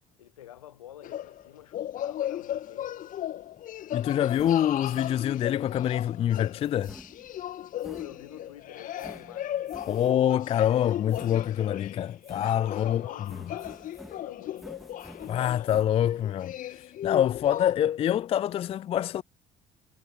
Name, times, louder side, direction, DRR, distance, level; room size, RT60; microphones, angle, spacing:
voice 1, 0.2-3.1 7.8-10.0 12.6-14.8, left 12 dB, 75° left, 1.5 m, -48 dB
sound 1, 1.0-17.7, left 11 dB, 50° left, 2.3 m, -37 dB
voice 2, 3.9-7.0 9.9-13.0 15.3-16.5 17.0-19.2, left 10 dB, 30° left, 0.4 m, -25 dB
sound 2, 4.3-5.6 6.6-8.5 9.0-10.4 11.1-11.9 12.2-12.9 13.3-15.8, equal, ahead, 3.9 m, -50 dB
figure-of-eight pair, 50°, 18 cm